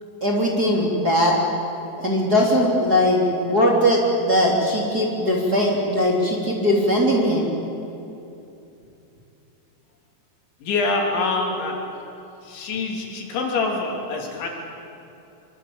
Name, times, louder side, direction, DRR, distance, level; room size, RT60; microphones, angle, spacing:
voice 1, 0.2-1.3 2.0-7.5, equal, 25° right, -2 dB, 3.2 m, -20 dB
voice 2, 10.6-11.9 12.4-14.5, left 3 dB, 80° left, 1 dB, 5.7 m, -25 dB
24.5 x 24.5 x 8.8 m, 2.8 s
omnidirectional pair, 5.2 m